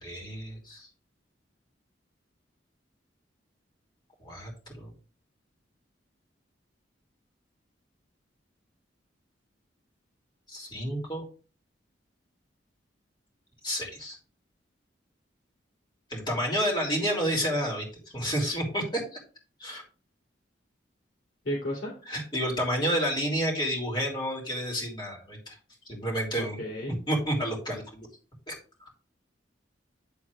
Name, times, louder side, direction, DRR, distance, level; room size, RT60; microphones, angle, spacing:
voice 1, 0.0-0.9 4.2-4.5 4.8-4.9 10.5-11.2 13.6-14.2 16.1-19.2 19.6-19.8 22.1-25.6 25.9-26.6 27.1-28.1 28.5-28.6, equal, 25° left, -2 dB, 3.1 m, -30 dB
voice 2, 21.4-21.9 26.3-27.0, equal, 70° left, -4 dB, 2.9 m, -33 dB
10.0 x 4.0 x 4.8 m, 0.37 s
head